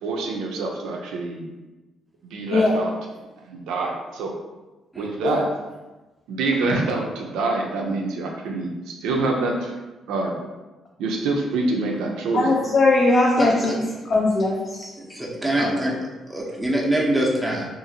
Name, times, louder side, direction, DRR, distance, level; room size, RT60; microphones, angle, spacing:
voice 1, 0.0-1.4 2.3-2.9 3.4-4.4 5.0-5.5 6.3-9.7 10.1-10.4 11.0-12.5 15.5-15.7, right 3 dB, 90° right, 1 dB, 0.4 m, -26 dB
voice 2, 12.3-13.7 14.1-14.9, left 2 dB, 45° left, -3 dB, 0.4 m, -19 dB
voice 3, 13.4-13.9 15.0-16.0 16.3-17.6, right 1 dB, 5° right, -3 dB, 0.6 m, -24 dB
2.8 x 2.4 x 2.6 m, 1.1 s
cardioid pair, 90°, 0 cm